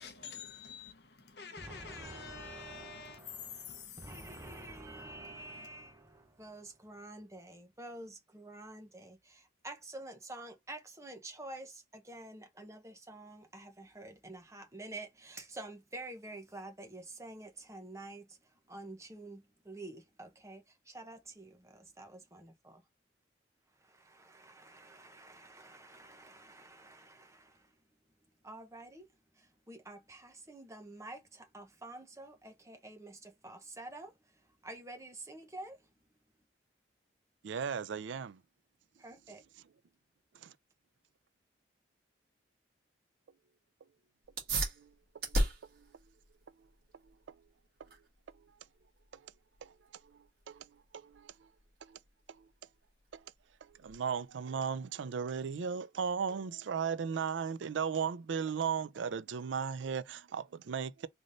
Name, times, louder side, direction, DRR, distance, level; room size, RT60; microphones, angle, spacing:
voice 1, 0.0-4.0, left 6 dB, 60° left, 1.0 m, -47 dB
voice 2, 1.6-18.4 18.7-22.8 23.8-27.7 28.4-29.1 29.4-34.1 34.6-35.8 39.0-39.4, right 2 dB, 15° right, 0.9 m, -49 dB
voice 3, 37.4-38.4 40.4-40.5 44.8-44.9 49.6-49.7 50.5-50.6 50.9-51.3 51.8-52.0 53.1-53.2 53.8-61.1, right 6 dB, 85° right, 0.4 m, -36 dB
sound 1, 44.2-54.3, right 1 dB, 55° right, 1.7 m, -40 dB
3.9 x 3.3 x 2.6 m
head